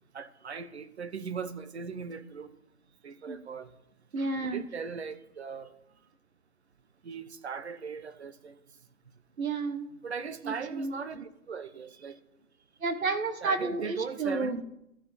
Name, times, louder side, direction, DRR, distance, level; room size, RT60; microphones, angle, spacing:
voice 1, 0.1-2.5 3.0-3.7 4.4-5.7 7.0-8.6 10.0-12.2 13.4-14.6, right 6 dB, 45° right, 0.9 m, -39 dB
voice 2, 4.1-4.6 9.4-9.9 10.4-10.9 12.8-14.6, right 3 dB, 65° right, 1.2 m, -31 dB
13.5 x 6.8 x 4.2 m
figure-of-eight pair, 145°, 44 cm